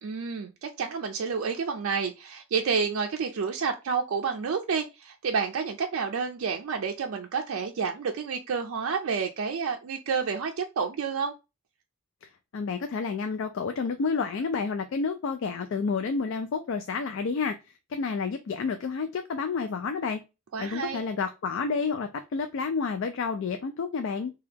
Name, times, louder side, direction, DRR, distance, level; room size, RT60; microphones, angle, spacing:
voice 1, 0.0-11.3 20.5-21.0, right 5 dB, 70° right, 2 dB, 0.4 m, -29 dB
voice 2, 12.5-17.6 17.9-20.2 20.6-24.3, left 5 dB, 65° left, 6 dB, 0.3 m, -30 dB
2.8 x 2.3 x 3.4 m, 0.26 s
head